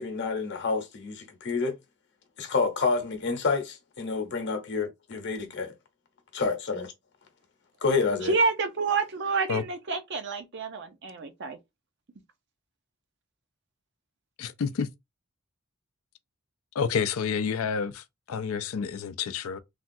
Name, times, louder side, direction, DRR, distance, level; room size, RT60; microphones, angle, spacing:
voice 1, 0.0-1.7 2.4-5.7 6.3-6.9 7.8-8.3, left 4 dB, 55° left, 0.8 m, -28 dB
voice 2, 8.2-11.6, right 4 dB, 55° right, 0.6 m, -28 dB
voice 3, 14.4-14.9 16.7-19.6, left 6 dB, 75° left, 0.4 m, -29 dB
3.3 x 2.4 x 2.6 m
head